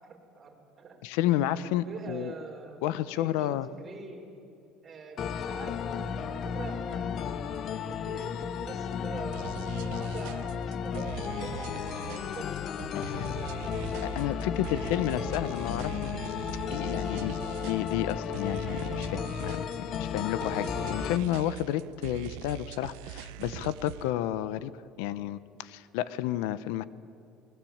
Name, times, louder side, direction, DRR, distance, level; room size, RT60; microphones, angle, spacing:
voice 1, 0.1-1.0 1.8-4.3 4.8-9.5 9.9-12.5 13.1-13.8 14.3-15.6, right 4 dB, 25° right, 0 dB, 4.9 m, -45 dB
voice 2, 1.0-2.3 2.8-3.7 12.9-13.4 14.0-16.1 16.7-24.7 25.0-26.8, left 12 dB, 85° left, 16 dB, 0.9 m, -31 dB
sound 1, 5.2-21.2, left 7 dB, 40° left, 0.9 m, -34 dB
sound 2, 9.3-24.1, right 14 dB, 90° right, 1.0 m, -43 dB
28.0 x 20.5 x 8.8 m, 2.7 s
cardioid pair, 145°, 0 cm